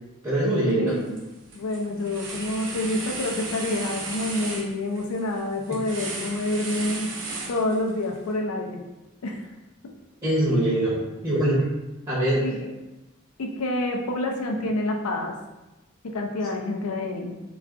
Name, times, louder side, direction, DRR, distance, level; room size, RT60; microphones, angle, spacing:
voice 1, 0.2-1.0 5.7-5.8 10.2-11.6 12.1-12.4, right 1 dB, 20° right, -9 dB, 0.6 m, -23 dB
voice 2, 0.8-1.2 1.5-7.1 7.5-8.8 9.2-9.4 12.4-12.7 13.4-15.3 16.0-17.4, left 2 dB, 85° left, 2 dB, 0.5 m, -28 dB
sound 1, 0.9-1.2 1.5-8.0, right 3 dB, 60° right, 0.6 m, -35 dB
2.3 x 2.3 x 3.6 m, 1.0 s
head